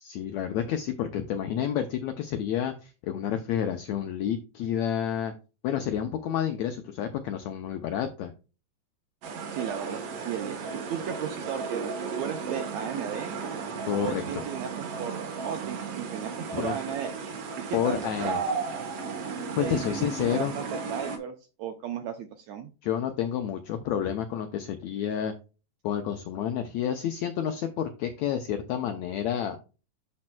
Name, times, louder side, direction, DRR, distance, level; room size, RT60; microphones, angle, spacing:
voice 1, 0.0-5.3 5.6-8.3 13.9-14.4 16.5-16.7 17.7-18.4 19.6-20.5 22.8-25.3 25.8-29.6, left 9 dB, 85° left, 7 dB, 1.6 m, -29 dB
sound 1, 9.2-21.2, right 5 dB, 60° right, 1.7 m, -35 dB
voice 2, 9.5-10.6 10.9-13.4 13.9-17.1 17.7-18.6 19.6-22.7, right 8 dB, 80° right, 6 dB, 1.6 m, -35 dB
11.5 x 4.3 x 2.2 m, 0.31 s
omnidirectional pair, 3.9 m